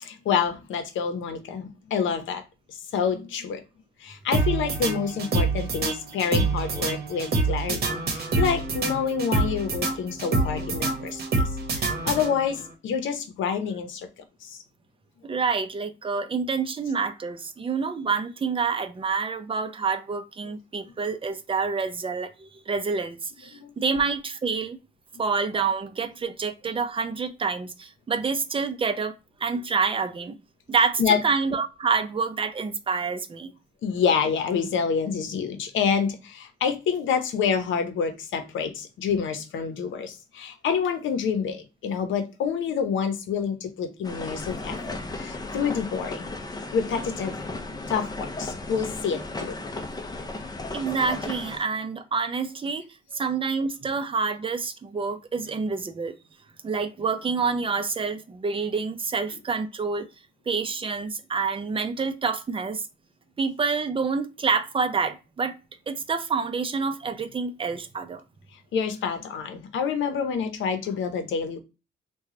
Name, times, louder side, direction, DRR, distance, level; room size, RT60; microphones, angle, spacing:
voice 1, 0.0-2.4 2.7-3.6 4.0-11.2 11.7-14.1 14.4-14.6 23.5-23.7 31.0-31.2 33.8-46.3 46.7-47.4 47.9-49.6 49.8-49.9 68.7-71.6, left 6 dB, 75° left, 0.8 m, -27 dB
sound 1, 4.3-12.6, right 3 dB, 50° right, 1.0 m, -26 dB
voice 2, 15.2-24.8 25.2-29.1 29.4-30.4 30.7-33.5 50.7-52.8 53.1-56.1 56.6-60.1 60.5-62.8 63.4-65.6 65.9-68.2, right 5 dB, 25° right, 0.5 m, -27 dB
sound 2, 44.0-51.6, left 2 dB, 20° left, 0.6 m, -35 dB
3.0 x 2.3 x 3.7 m
cardioid pair, 90°, 20 cm